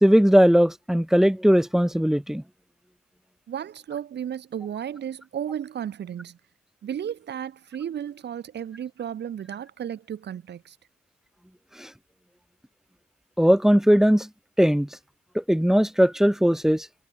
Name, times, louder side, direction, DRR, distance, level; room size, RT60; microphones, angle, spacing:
voice 1, 0.0-2.4 11.8-11.9 13.4-14.3 14.6-14.9 15.3-16.9, equal, ahead, 0.7 m, -19 dB
voice 2, 3.5-6.4 6.8-10.8, right 9 dB, 60° right, 2.6 m, -34 dB
cardioid pair, 90°, 20 cm